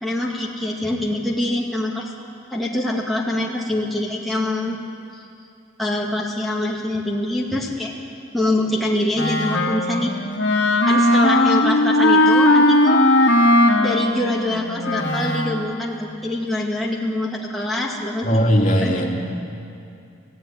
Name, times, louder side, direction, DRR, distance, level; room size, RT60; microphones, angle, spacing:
voice 1, 0.0-2.1 2.5-4.8 5.1-5.2 5.8-7.9 8.3-10.2 10.9-13.1 13.8-18.3 18.8-19.0, left 1 dB, ahead, -4 dB, 2.2 m, -24 dB
Wind instrument woodwind instrument, 9.1-15.7, left 1 dB, 65° left, 2.2 m, -18 dB
voice 2, 18.2-19.4, equal, 40° left, 0 dB, 2.8 m, -19 dB
27.5 x 16.5 x 9.6 m, 2.6 s
head